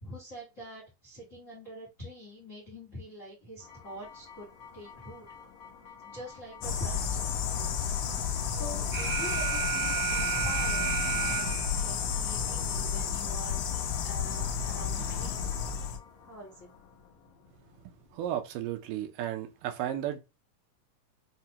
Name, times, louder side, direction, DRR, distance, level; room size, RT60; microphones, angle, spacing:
voice 1, 0.0-4.5 4.7-5.3 6.0-7.7 8.5-13.6 14.0-15.5 16.2-16.5, left 1 dB, 50° left, 0.9 m, -44 dB
sound 1, 3.6-18.5, left 6 dB, 70° left, 1.1 m, -51 dB
sound 2, 6.6-16.0, left 7 dB, 90° left, 1.4 m, -31 dB
Alarm, 8.9-11.9, right 11 dB, 60° right, 2.2 m, -31 dB
voice 2, 18.1-20.2, right 11 dB, 80° right, 2.3 m, -33 dB
5.7 x 2.1 x 2.8 m
omnidirectional pair, 3.8 m